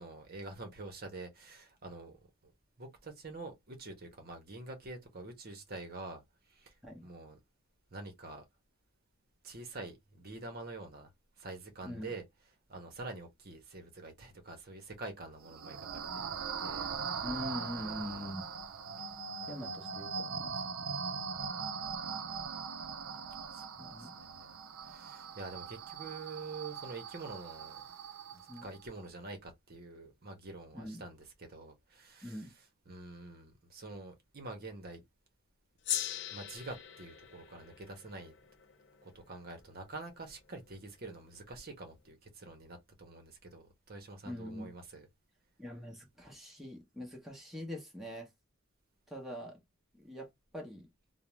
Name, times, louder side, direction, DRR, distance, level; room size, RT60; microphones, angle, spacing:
voice 1, 0.0-2.5 2.8-6.2 6.5-6.7 7.0-7.4 7.9-8.4 9.4-11.1 11.4-16.2 16.6-16.9 17.2-17.4 17.7-18.4 20.5-21.5 23.5-24.5 24.9-27.8 28.3-35.0 36.3-38.3 39.0-45.1, right 3 dB, 45° right, 0.7 m, -47 dB
sound 1, 15.4-28.8, right 5 dB, 75° right, 0.4 m, -41 dB
voice 2, 17.2-18.4 19.4-21.0 23.8-24.1 28.5-28.7 30.7-31.0 32.2-32.5 44.2-44.7 45.6-48.3 49.1-49.6 49.9-50.3 50.5-50.9, left 1 dB, ahead, 0.7 m, -43 dB
Gong, 35.8-40.6, left 10 dB, 55° left, 0.5 m, -41 dB
2.4 x 2.0 x 2.9 m
head